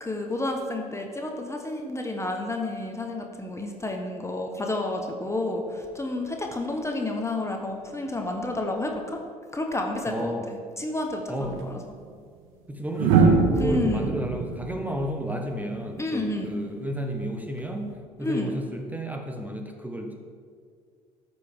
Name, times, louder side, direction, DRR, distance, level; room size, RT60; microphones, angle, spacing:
voice 1, 0.0-9.2 9.5-11.8 13.6-14.1 16.0-16.5 18.2-18.6, left 2 dB, 15° left, 2 dB, 1.1 m, -30 dB
voice 2, 10.1-10.4 11.3-11.6 12.7-17.9 18.2-20.1, right 1 dB, 10° right, 3 dB, 1.2 m, -32 dB
sound 1, 11.4-11.6 13.0-16.0 17.6-17.9, right 4 dB, 70° right, 1.0 m, -23 dB
13.5 x 5.3 x 3.7 m, 2.1 s
hypercardioid pair, 60°, 18 cm